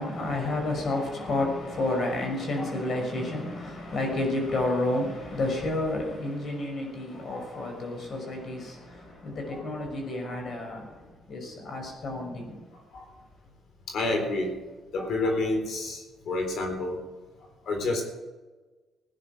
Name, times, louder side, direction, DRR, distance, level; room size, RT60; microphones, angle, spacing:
voice 1, 0.0-11.0 11.3-12.6, left 2 dB, 55° left, 5.7 m, -30 dB
voice 2, 0.9-1.3 2.6-3.1 7.1-7.7 9.5-9.6 12.9-13.1 13.9-14.5 14.9-17.0 17.7-18.0, left 2 dB, 70° left, 4.0 m, -30 dB
17.5 x 9.9 x 6.1 m
cardioid pair, 90°, 0 cm